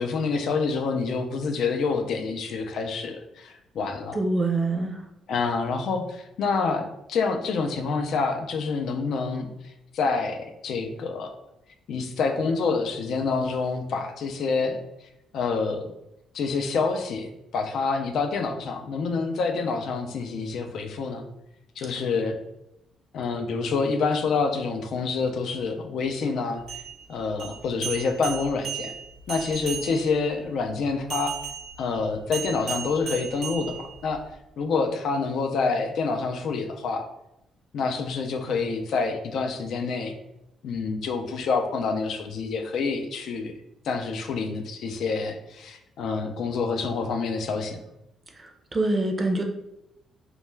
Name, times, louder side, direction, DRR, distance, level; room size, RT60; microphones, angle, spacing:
voice 1, 0.0-4.2 5.3-11.3 11.9-15.9 16.3-21.2 21.8-22.4 23.1-26.8 27.1-28.9 29.3-31.3 31.8-34.2 34.6-37.0 37.7-40.2 40.6-43.5 43.8-47.8, left 4 dB, 70° left, 5 dB, 0.3 m, -27 dB
voice 2, 4.1-5.0 48.7-49.4, right 2 dB, 30° right, 3 dB, 0.4 m, -24 dB
sound 1, 26.6-30.3 31.1-34.3, right 7 dB, 85° right, 0.7 m, -36 dB
2.2 x 2.1 x 3.1 m, 0.85 s
cardioid pair, 90°, 0 cm